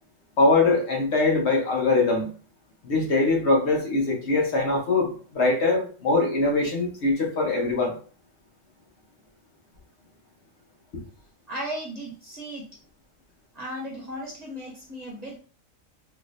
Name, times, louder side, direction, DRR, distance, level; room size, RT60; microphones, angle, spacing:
voice 1, 0.4-2.3 2.8-7.9, left 3 dB, 60° left, 0 dB, 1.1 m, -22 dB
voice 2, 11.5-12.7 13.5-15.4, equal, 35° right, -3 dB, 0.9 m, -36 dB
3.6 x 2.8 x 2.5 m, 0.39 s
omnidirectional pair, 1.4 m